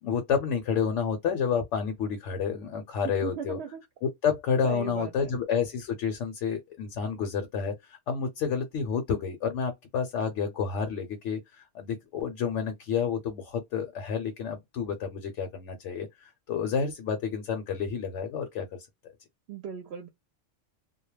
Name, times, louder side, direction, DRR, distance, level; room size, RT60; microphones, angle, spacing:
voice 1, 0.0-3.6 4.0-18.9, left 6 dB, 75° left, 0.9 m, -30 dB
voice 2, 3.0-3.8 4.6-5.3 19.5-20.1, right 8 dB, 65° right, 0.7 m, -37 dB
2.2 x 2.0 x 3.0 m
omnidirectional pair, 1.3 m